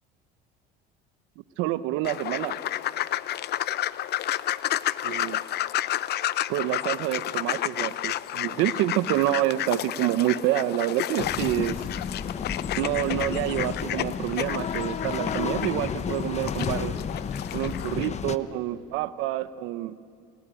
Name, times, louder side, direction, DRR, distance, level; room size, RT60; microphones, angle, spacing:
voice 1, 1.6-2.6 5.0-5.4 6.5-11.9 12.8-16.9 17.5-20.0, right 14 dB, 70° right, 14 dB, 1.0 m, -27 dB
sound 1, 2.0-18.1, left 13 dB, 50° left, 0.7 m, -31 dB
sound 2, 11.2-18.4, left 7 dB, 30° left, 1.0 m, -31 dB
29.0 x 16.5 x 9.2 m, 2.2 s
supercardioid pair, 95°, 21 cm